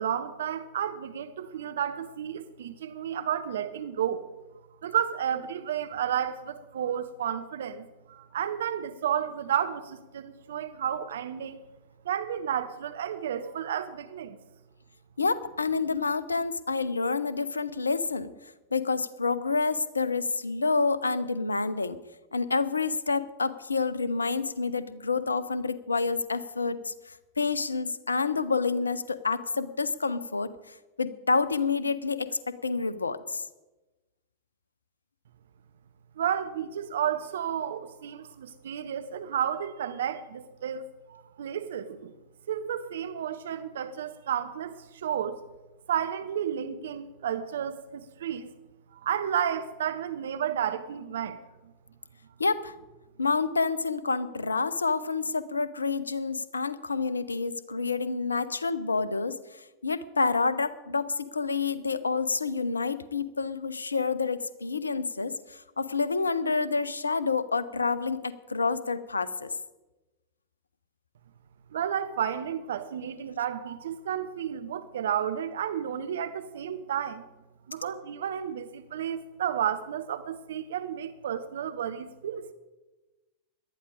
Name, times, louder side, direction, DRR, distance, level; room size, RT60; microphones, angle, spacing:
voice 1, 0.0-4.3 4.8-11.6 12.0-14.4 36.2-42.1 42.5-45.4 45.9-48.5 48.9-51.4 71.7-77.2 77.7-82.5, right 9 dB, 60° right, 0.7 m, -32 dB
voice 2, 15.2-18.3 18.7-22.0 22.3-26.9 27.4-33.4 52.4-52.7 53.2-59.4 59.8-69.5, left 4 dB, 75° left, 0.7 m, -28 dB
18.0 x 12.0 x 5.0 m
figure-of-eight pair, 90°, 0 cm